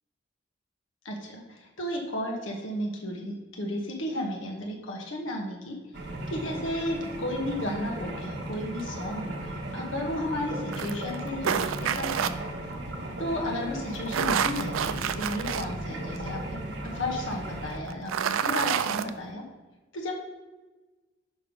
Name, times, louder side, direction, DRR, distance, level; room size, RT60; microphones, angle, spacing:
voice 1, 1.0-5.8 6.3-12.3 13.2-16.6 16.8-19.4 19.9-20.1, left 1 dB, 70° left, 0 dB, 1.0 m, -33 dB
sound 1, 5.9-17.8, right 1 dB, 55° right, 1.0 m, -36 dB
sound 2, 10.7-12.3 13.9-15.6 16.2-16.3 17.9-19.1, right 8 dB, 85° right, 0.4 m, -28 dB
5.3 x 5.1 x 5.2 m, 1.2 s
head